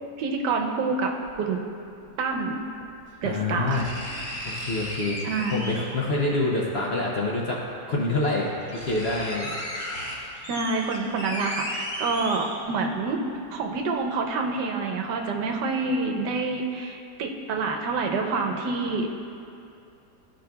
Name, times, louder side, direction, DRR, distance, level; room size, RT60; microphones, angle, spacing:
voice 1, 0.2-1.1 1.4-1.6 2.2-2.6 3.2-3.9 5.2-5.6 10.5-13.2 13.5-19.2, right 4 dB, 90° right, 3 dB, 1.3 m, -27 dB
sound 1, 1.3-1.4 2.8-2.9 3.7-6.1 7.4-7.5 8.1-8.2 8.5-12.9 13.3-13.4, equal, 30° left, 1.2 m, -35 dB
voice 2, 3.2-3.9 4.4-7.6 7.9-9.9 10.1-10.3, left 2 dB, 50° left, -4 dB, 0.8 m, -27 dB
13.0 x 5.0 x 2.3 m, 2.6 s
omnidirectional pair, 1.8 m